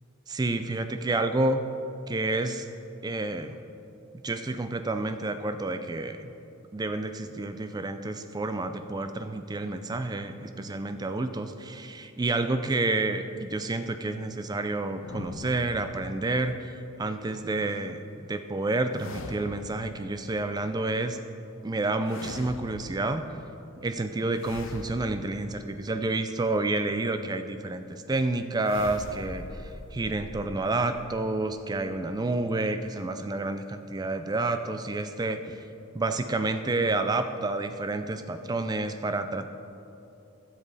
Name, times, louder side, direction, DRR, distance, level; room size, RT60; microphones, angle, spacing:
voice 1, 0.3-1.6 2.1-2.7 3.0-3.6 4.2-6.3 6.7-16.7 17.0-21.2 21.6-23.3 23.8-35.6 35.9-39.5, right 2 dB, 20° right, 9 dB, 0.3 m, -29 dB
sound 1, 15.0-16.5 18.9-20.0 22.0-23.2 24.3-26.2 28.6-32.2, left 2 dB, 60° left, 0.6 m, -42 dB
12.5 x 7.5 x 4.1 m, 2.8 s
head